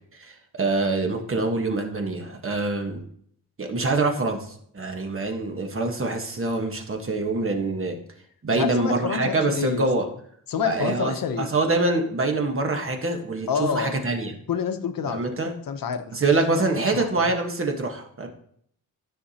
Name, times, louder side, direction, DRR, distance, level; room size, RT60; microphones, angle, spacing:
voice 1, 0.1-3.0 3.6-8.0 8.4-10.1 10.6-14.3 15.1-15.5 16.1-18.3, right 3 dB, 35° right, 4 dB, 1.2 m, -25 dB
voice 2, 8.5-9.9 10.5-11.5 13.5-14.1 14.5-15.2 15.7-16.2 16.6-16.7 16.9-17.1, left 7 dB, 65° left, 9 dB, 0.8 m, -27 dB
13.0 x 5.7 x 2.8 m, 0.66 s
wide cardioid pair, 115°, 36 cm